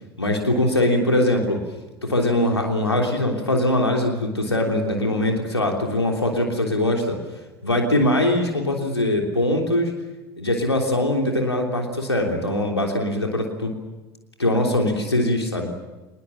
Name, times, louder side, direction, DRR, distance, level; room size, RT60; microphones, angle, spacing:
voice 1, 0.2-1.6 2.0-7.2 7.6-9.9 10.4-13.7 14.4-15.7, left 1 dB, 90° left, 2 dB, 3.3 m, -22 dB
27.0 x 20.5 x 7.5 m, 1.1 s
figure-of-eight pair, 70°, 13 cm